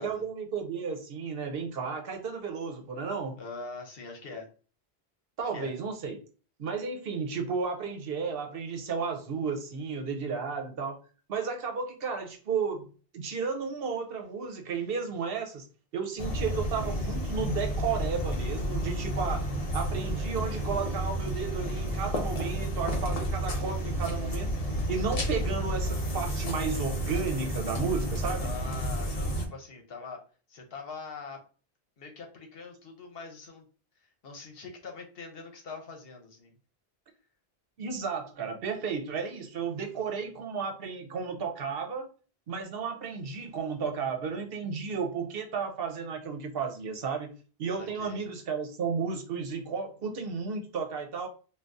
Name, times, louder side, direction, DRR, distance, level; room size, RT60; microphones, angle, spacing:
voice 1, 0.0-3.4 5.4-6.2 6.6-11.0 11.3-12.9 13.1-15.6 15.9-19.5 19.7-24.5 24.9-28.5 37.8-42.1 42.5-47.3 47.6-51.3, right 5 dB, 70° right, 4 dB, 0.9 m, -33 dB
voice 2, 3.4-4.5 5.5-5.7 28.4-30.2 30.5-31.4 32.0-33.6 34.2-36.5 47.8-48.2, left 4 dB, 70° left, 3 dB, 1.0 m, -43 dB
sound 1, 16.2-29.5, equal, 40° left, 0.7 m, -31 dB
2.6 x 2.3 x 3.4 m, 0.37 s
omnidirectional pair, 1.0 m